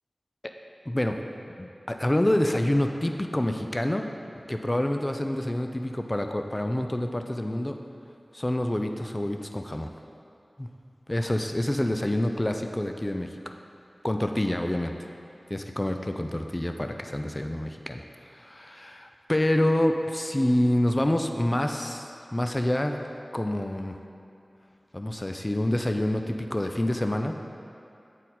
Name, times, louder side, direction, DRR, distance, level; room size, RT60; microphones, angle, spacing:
voice 1, 0.9-1.2 1.6-4.1 4.5-7.8 8.3-9.9 10.6-10.7 11.1-13.6 14.0-14.9 15.5-18.0 18.3-22.9 23.3-23.9 24.9-27.3, left 1 dB, 25° left, 5 dB, 0.3 m, -27 dB
8.9 x 4.2 x 4.1 m, 2.7 s
wide cardioid pair, 70°, 0 cm